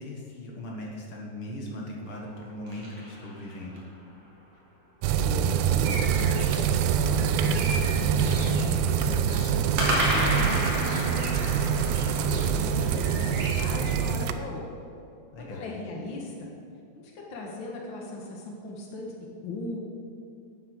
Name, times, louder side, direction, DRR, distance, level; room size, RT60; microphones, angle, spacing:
voice 1, 0.0-3.8 15.3-15.6, left 1 dB, 55° left, -1 dB, 1.5 m, -39 dB
sound 1, 2.1-4.0 9.8-14.0, equal, 40° right, 2.5 m, -32 dB
sound 2, 5.0-14.3, right 7 dB, 90° right, 2.8 m, -25 dB
voice 2, 5.1-11.6 12.1-14.6 15.4-16.5 16.9-19.1 19.4-19.8, left 2 dB, 90° left, -1 dB, 1.0 m, -38 dB
sound 3, 5.8-14.2, right 1 dB, 65° right, 3.7 m, -39 dB
10.5 x 9.1 x 6.5 m, 2.5 s
omnidirectional pair, 4.9 m